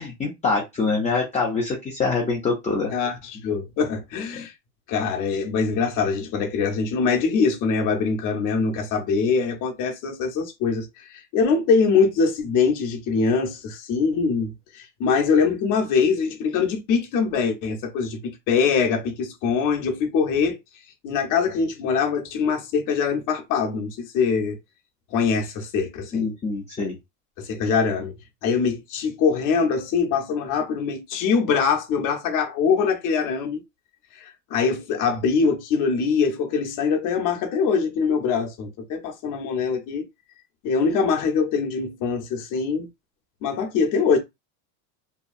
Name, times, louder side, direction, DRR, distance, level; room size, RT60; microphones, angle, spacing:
voice 1, 0.0-2.9 26.1-27.0, left 4 dB, 15° left, 0.5 m, -25 dB
voice 2, 2.9-4.5 4.9-20.6 21.0-24.6 25.1-26.3 27.4-28.1 28.4-33.6 34.1-40.0 40.6-42.9 43.4-44.2, left 5 dB, 45° left, 0.8 m, -23 dB
2.8 x 2.2 x 2.4 m
supercardioid pair, 140°, 42 cm